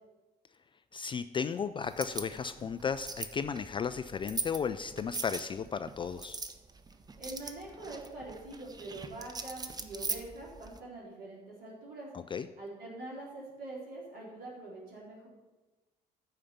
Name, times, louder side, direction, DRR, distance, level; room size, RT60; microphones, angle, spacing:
voice 1, 0.9-6.4 12.1-12.5, left 6 dB, 25° left, 11 dB, 0.4 m, -34 dB
sound 1, 1.8-10.8, right 4 dB, 20° right, 0.7 m, -42 dB
voice 2, 7.2-12.1 12.6-15.3, right 2 dB, 50° right, -4 dB, 4.1 m, -44 dB
13.5 x 5.0 x 5.8 m, 1.2 s
figure-of-eight pair, 50°, 21 cm